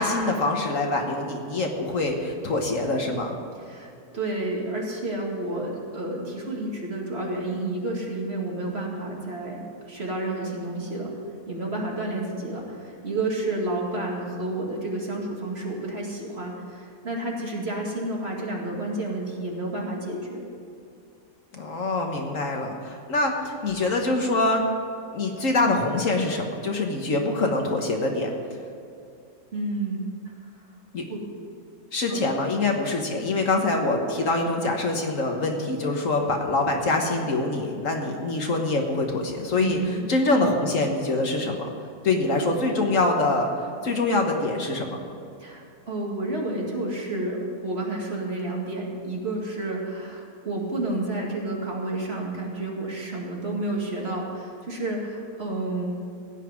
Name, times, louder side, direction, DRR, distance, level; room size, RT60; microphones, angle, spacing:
voice 1, 0.0-3.4 21.5-24.7 25.1-28.3 30.9-31.0 31.9-39.8 40.1-41.7 42.0-43.5 43.8-45.0, left 2 dB, 55° left, 2 dB, 1.6 m, -24 dB
voice 2, 3.6-11.1 11.5-20.4 29.5-30.3 31.1-31.3 32.1-32.3 39.6-40.0 45.4-55.9, right 2 dB, 40° right, -2 dB, 2.3 m, -30 dB
16.5 x 5.8 x 9.5 m, 2.5 s
omnidirectional pair, 1.6 m